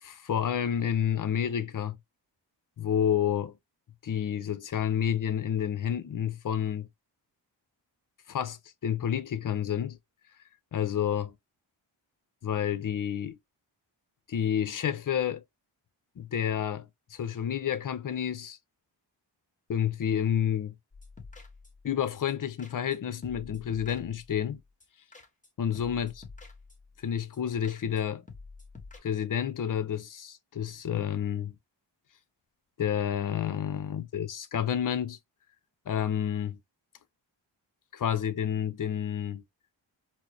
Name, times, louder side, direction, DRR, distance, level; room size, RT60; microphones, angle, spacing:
voice 1, 0.0-2.0 2.8-3.5 4.0-6.9 8.3-10.0 10.7-11.3 12.4-13.4 14.3-15.4 16.2-18.6 19.7-20.7 21.8-24.6 25.6-26.1 27.0-28.2 29.0-31.6 32.8-35.2 35.9-36.6 37.9-39.4, left 9 dB, 45° left, 0.6 m, -30 dB
sound 1, 20.9-21.9 22.3-22.4 22.6-23.0 23.2-24.4 24.8-24.9 25.1-25.5 25.7-27.0 27.3-27.4 27.6-28.0 28.3-29.0, left 4 dB, 15° left, 1.2 m, -48 dB
4.4 x 2.0 x 2.9 m
cardioid pair, 60°, 45 cm